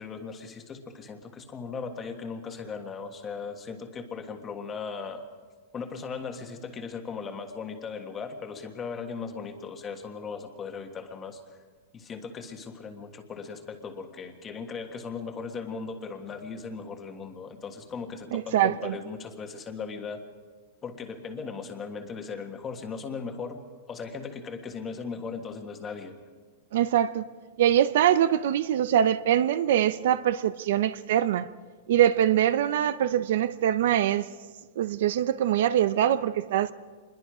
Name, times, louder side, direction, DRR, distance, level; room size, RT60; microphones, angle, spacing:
voice 1, 0.0-5.2 5.7-11.4 11.9-20.2 20.8-26.2, left 5 dB, 15° left, 1.6 m, -38 dB
voice 2, 18.3-19.0 26.7-27.3 27.6-31.5 31.9-34.3 34.8-36.7, right 11 dB, 60° right, 0.6 m, -23 dB
26.5 x 21.5 x 4.9 m
supercardioid pair, 170°, 0 cm